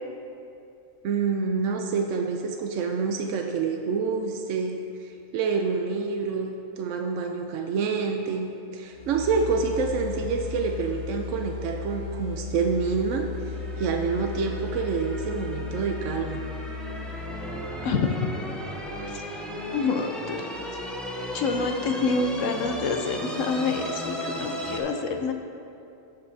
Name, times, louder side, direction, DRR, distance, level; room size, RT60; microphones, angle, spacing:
voice 1, 1.0-16.4, right 5 dB, 70° right, 3 dB, 0.9 m, -27 dB
sound 1, 8.9-18.4, left 4 dB, 45° right, 1.7 m, -36 dB
sound 2, 13.5-24.8, equal, ahead, 0.5 m, -36 dB
voice 2, 17.8-18.2 19.1-19.2 19.7-20.5 21.3-25.3, left 4 dB, 75° left, 5 dB, 1.0 m, -27 dB
16.0 x 5.3 x 2.7 m, 2.7 s
omnidirectional pair, 1.4 m